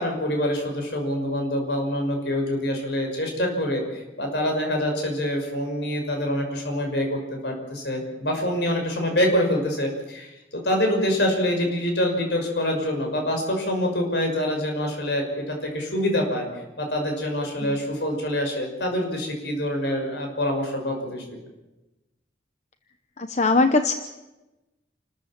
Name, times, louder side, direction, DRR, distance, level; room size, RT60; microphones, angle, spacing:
voice 1, 0.0-21.2, left 1 dB, 70° left, 2 dB, 6.0 m, -26 dB
voice 2, 23.2-23.9, left 3 dB, 40° left, 8 dB, 0.9 m, -21 dB
28.5 x 14.0 x 7.5 m, 1.0 s
head